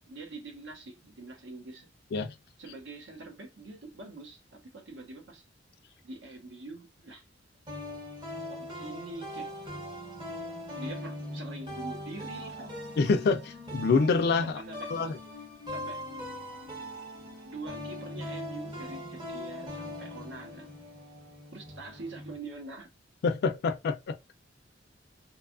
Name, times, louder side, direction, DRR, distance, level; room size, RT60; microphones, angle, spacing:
voice 1, 0.0-1.9 2.6-5.4 6.0-7.2 8.5-9.5 10.7-12.8 14.4-15.1 15.7-16.0 17.4-20.7 21.5-22.9, right 2 dB, 70° right, 0.8 m, -44 dB
sound 1, 7.7-22.4, left 1 dB, 25° right, 0.8 m, -41 dB
voice 2, 13.0-14.6 14.9-15.2 23.2-24.2, left 4 dB, 60° left, 0.3 m, -26 dB
2.6 x 2.3 x 2.4 m
head